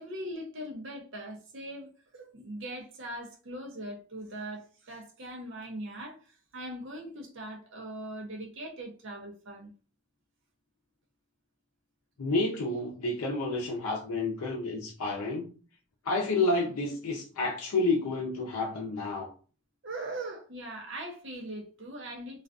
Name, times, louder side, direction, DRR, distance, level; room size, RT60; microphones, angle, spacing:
voice 1, 0.0-9.7 19.8-22.4, right 1 dB, 55° right, 0.6 m, -41 dB
voice 2, 12.2-15.5 16.0-19.3, left 2 dB, 85° left, 0.5 m, -30 dB
2.4 x 2.3 x 2.3 m
head